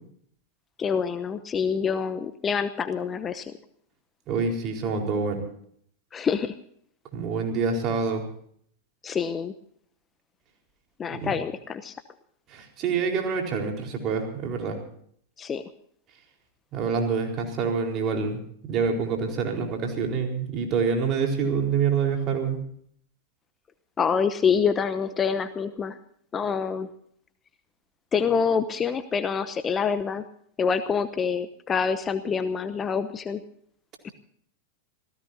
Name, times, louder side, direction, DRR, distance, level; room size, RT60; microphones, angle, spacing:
voice 1, 0.8-3.5 6.1-6.5 9.0-9.5 11.0-11.9 15.4-15.6 24.0-25.9 26.3-26.9 28.1-30.2 30.6-33.4 34.0-34.1, left 6 dB, 20° left, 12 dB, 0.9 m, -26 dB
voice 2, 4.3-5.4 7.1-8.2 11.1-11.4 12.5-14.8 16.7-18.4 18.7-22.6, right 5 dB, 35° right, 2 dB, 4.3 m, -26 dB
27.5 x 16.5 x 2.8 m, 0.64 s
figure-of-eight pair, 90°, 0 cm